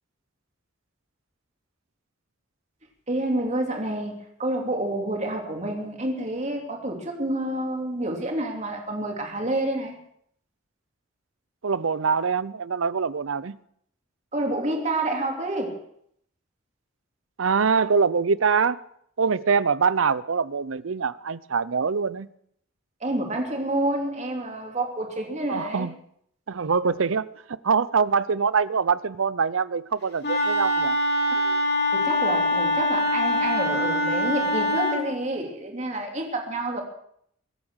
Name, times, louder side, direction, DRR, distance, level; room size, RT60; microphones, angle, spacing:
voice 1, 3.1-10.0 14.3-15.8 23.0-25.9 26.8-26.9 31.9-36.8, right 1 dB, 35° right, 3.1 m, -28 dB
voice 2, 11.6-13.6 17.4-18.8 19.2-22.3 25.5-25.9 26.5-27.3 27.6-31.0 31.3-31.6, right 5 dB, 80° right, 0.6 m, -24 dB
Wind instrument woodwind instrument, 30.2-35.1, left 1 dB, 55° left, 3.6 m, -23 dB
22.5 x 8.8 x 6.4 m
head